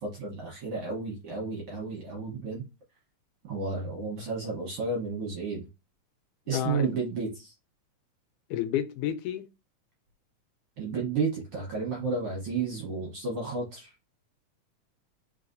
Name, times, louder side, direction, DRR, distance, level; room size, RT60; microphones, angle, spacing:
voice 1, 0.0-2.6 3.5-5.7 6.5-7.5 10.8-13.9, right 4 dB, 60° right, 1.5 m, -32 dB
voice 2, 6.5-6.9 8.5-9.5, left 11 dB, 80° left, 2.1 m, -30 dB
4.0 x 3.9 x 2.5 m
omnidirectional pair, 3.7 m